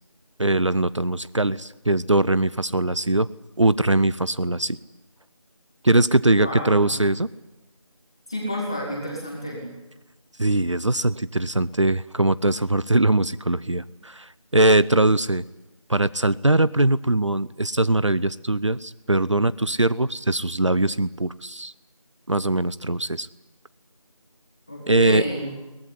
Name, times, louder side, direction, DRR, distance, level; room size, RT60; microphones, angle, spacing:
voice 1, 0.4-3.3 3.6-4.8 5.8-7.3 10.4-15.4 15.9-21.7 22.3-23.3 24.9-25.2, right 2 dB, 60° right, 18 dB, 0.8 m, -21 dB
voice 2, 6.4-6.9 8.3-9.7 24.7-25.4, equal, 10° left, -2 dB, 2.2 m, -30 dB
22.5 x 19.0 x 9.9 m, 1.0 s
figure-of-eight pair, 175°, 18 cm